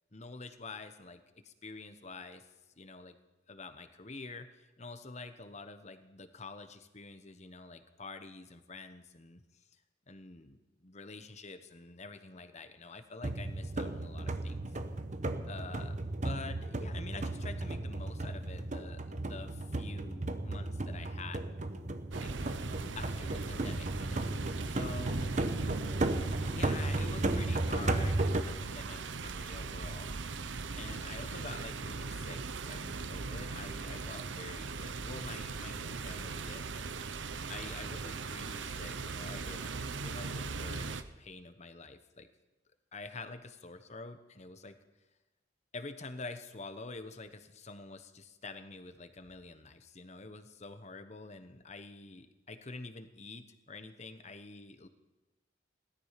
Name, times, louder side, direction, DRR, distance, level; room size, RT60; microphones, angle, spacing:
voice 1, 0.1-2.4 2.8-3.2 3.5-9.4 10.1-14.7 15.4-21.4 22.2-22.6 22.9-24.4 24.6-25.4 26.4-30.2 30.7-36.9 37.5-42.3 42.9-44.8 45.7-54.9, left 3 dB, 40° left, 10 dB, 1.1 m, -47 dB
sound 1, 13.2-28.4, right 2 dB, 40° right, 1.0 m, -35 dB
sound 2, 22.1-41.0, right 4 dB, 85° right, 0.8 m, -39 dB
17.5 x 13.0 x 5.9 m, 1.1 s
head